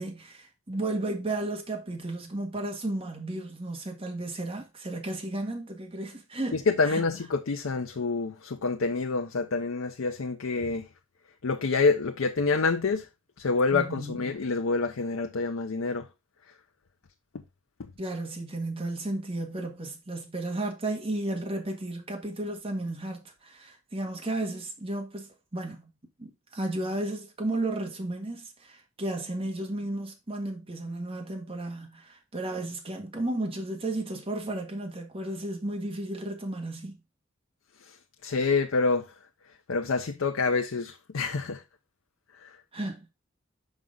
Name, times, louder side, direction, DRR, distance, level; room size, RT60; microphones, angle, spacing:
voice 1, 0.0-7.0 13.7-14.3 18.0-25.9 26.2-37.0 42.7-43.0, right 2 dB, 30° right, 1.6 m, -33 dB
voice 2, 6.5-10.9 11.4-13.1 13.4-16.1 17.8-17.9 38.2-39.1 39.7-41.6 42.4-42.5, left 4 dB, 85° left, 0.6 m, -27 dB
6.2 x 5.2 x 3.7 m
head